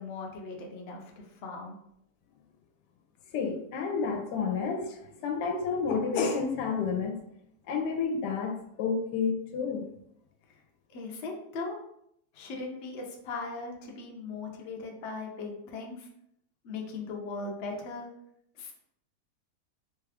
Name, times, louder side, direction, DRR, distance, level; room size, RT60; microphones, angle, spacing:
voice 1, 0.0-1.8 10.9-11.8 12.3-16.1 16.6-18.1 18.6-18.7, left 3 dB, 60° left, 1 dB, 0.7 m, -39 dB
voice 2, 3.3-7.2 7.7-9.9, left 5 dB, 80° left, 3 dB, 1.2 m, -30 dB
3.2 x 2.3 x 3.4 m, 0.74 s
omnidirectional pair, 1.8 m